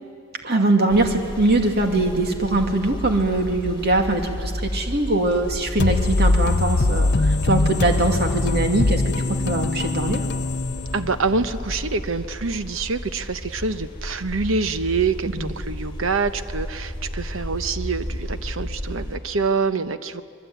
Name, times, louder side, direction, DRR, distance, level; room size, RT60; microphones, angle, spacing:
voice 1, 0.4-10.2 15.3-15.4, right 2 dB, 50° right, 4 dB, 2.4 m, -22 dB
sound 1, 0.9-19.2, equal, 25° left, 4.5 m, -33 dB
sound 2, 5.8-11.4, left 2 dB, 55° left, 0.7 m, -22 dB
voice 2, 10.9-20.2, right 4 dB, 65° right, 11 dB, 1.0 m, -26 dB
25.0 x 22.0 x 9.4 m, 2.3 s
head